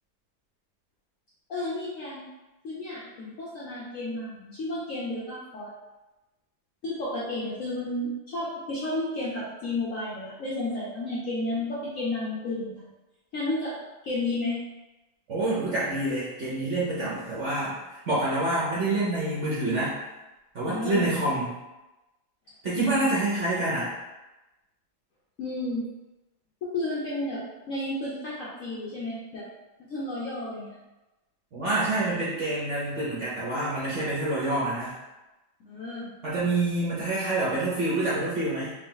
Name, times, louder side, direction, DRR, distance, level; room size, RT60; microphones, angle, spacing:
voice 1, 1.5-2.3 2.6-5.7 6.8-12.9 13.3-13.8 14.0-14.6 20.7-21.1 22.9-23.1 25.4-25.8 26.6-29.4 29.9-30.7 35.6-36.1, left 2 dB, 60° left, -7 dB, 0.8 m, -32 dB
voice 2, 15.3-19.9 20.5-21.5 22.6-23.9 31.5-34.9 36.2-38.7, right 2 dB, 50° right, -8 dB, 0.9 m, -27 dB
3.4 x 2.7 x 3.7 m, 1.1 s
omnidirectional pair, 2.1 m